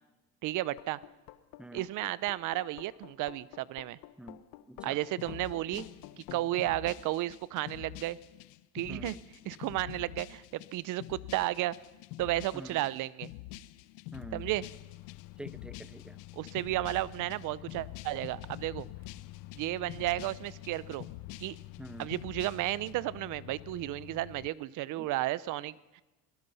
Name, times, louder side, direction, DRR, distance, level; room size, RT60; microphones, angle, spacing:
voice 1, 0.4-1.0 1.7-4.0 4.8-5.9 6.2-8.2 8.7-9.2 9.4-11.8 12.2-13.3 14.3-14.6 16.4-18.9 19.5-21.1 21.4-21.6 22.0-26.0, right 16 dB, 55° right, 20 dB, 0.8 m, -33 dB
sound 1, 0.8-6.6, left 15 dB, 70° left, 1.3 m, -50 dB
voice 2, 4.2-5.0 8.9-9.2 12.5-12.8 14.1-14.5 15.4-16.2 21.8-22.1 25.0-25.1, right 1 dB, 5° right, 16 dB, 0.6 m, -46 dB
sound 2, 5.2-22.9, left 15 dB, 90° left, 0.9 m, -47 dB
Microwave oven, 14.1-24.5, left 18 dB, 50° left, 0.7 m, -49 dB
25.0 x 19.0 x 5.7 m, 1.1 s
cardioid pair, 130°, 36 cm